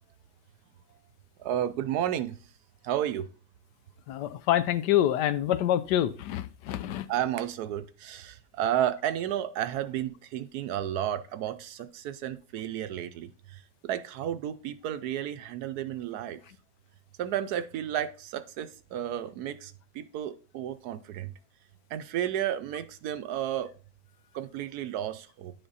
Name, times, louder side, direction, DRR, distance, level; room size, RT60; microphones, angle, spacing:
voice 1, 1.4-2.4 2.8-3.3 7.1-16.4 17.2-21.3 21.9-23.7 24.3-25.5, right 11 dB, 70° right, 1.0 m, -32 dB
voice 2, 4.1-7.1, left 12 dB, 80° left, 1.2 m, -26 dB
9.9 x 3.9 x 4.0 m
omnidirectional pair, 1.9 m